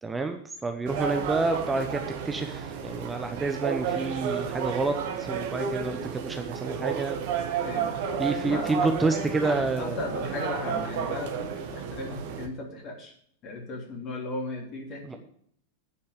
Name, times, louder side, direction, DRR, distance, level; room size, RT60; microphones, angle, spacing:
voice 1, 0.0-7.3 8.2-10.0 15.1-15.2, right 3 dB, 10° right, 6 dB, 0.8 m, -29 dB
sound 1, 0.9-12.5, right 7 dB, 50° right, 1.4 m, -32 dB
voice 2, 7.6-13.1 13.4-15.2, left 2 dB, 35° left, 1 dB, 3.1 m, -36 dB
9.9 x 5.7 x 8.2 m, 0.65 s
figure-of-eight pair, 90°, 0 cm